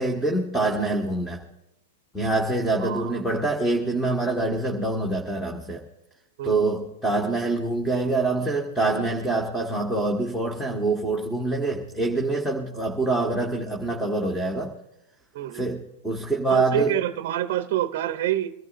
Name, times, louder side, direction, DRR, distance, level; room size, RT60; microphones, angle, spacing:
voice 1, 0.0-1.4 2.1-5.8 6.4-14.7 15.5-16.9, right 2 dB, 5° left, 1.7 m, -25 dB
voice 2, 2.8-3.2 6.4-6.6 15.3-15.7 16.5-18.5, right 12 dB, 55° right, 0.7 m, -27 dB
24.5 x 13.5 x 2.6 m
hypercardioid pair, 120°, 0 cm